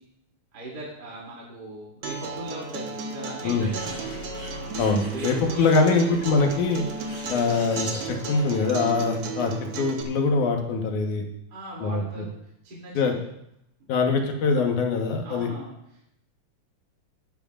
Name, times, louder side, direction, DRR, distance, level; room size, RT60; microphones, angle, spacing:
voice 1, 0.5-4.2 5.1-6.2 8.5-8.7 11.5-12.3 12.6-13.2 15.2-15.8, right 1 dB, 30° right, -5 dB, 3.2 m, -38 dB
Acoustic guitar, 2.0-10.0, right 4 dB, 55° right, 2.0 m, -35 dB
Bird, 3.5-8.6, left 1 dB, 5° left, 5.2 m, -42 dB
voice 2, 4.8-6.8 7.3-9.5 9.8-11.2 11.8-12.2 13.0-13.1 13.9-15.5, left 4 dB, 75° left, 2 dB, 2.7 m, -23 dB
19.5 x 11.5 x 2.5 m, 0.77 s
omnidirectional pair, 3.6 m